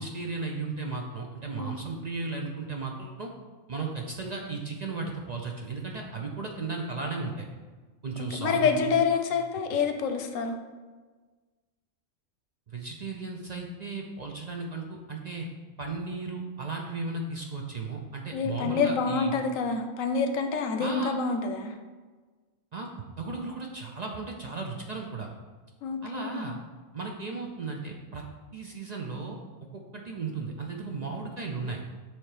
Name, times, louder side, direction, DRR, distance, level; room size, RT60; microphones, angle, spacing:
voice 1, 0.0-3.3 3.7-7.4 8.0-8.9 12.7-15.5 15.8-19.3 20.8-21.2 22.7-22.9 23.2-25.3 26.0-26.6 26.9-28.2 28.5-29.4 29.7-31.8, right 3 dB, 50° right, 1 dB, 0.5 m, -35 dB
voice 2, 8.2-10.6 18.3-21.8 25.8-26.4, left 5 dB, 90° left, 6 dB, 1.0 m, -27 dB
7.2 x 3.3 x 4.9 m, 1.4 s
omnidirectional pair, 1.3 m